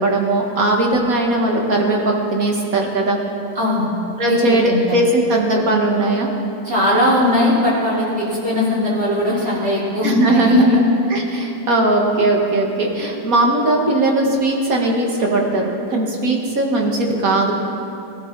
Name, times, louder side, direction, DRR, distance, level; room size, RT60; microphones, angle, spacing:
voice 1, 0.0-3.2 4.2-6.3 10.0-17.5, right 2 dB, 50° right, 0 dB, 2.1 m, -18 dB
voice 2, 3.5-3.9 4.2-4.8 6.6-10.8 11.3-11.4, left 1 dB, 35° right, -8 dB, 4.4 m, -18 dB
20.5 x 13.0 x 4.1 m, 2.8 s
omnidirectional pair, 2.0 m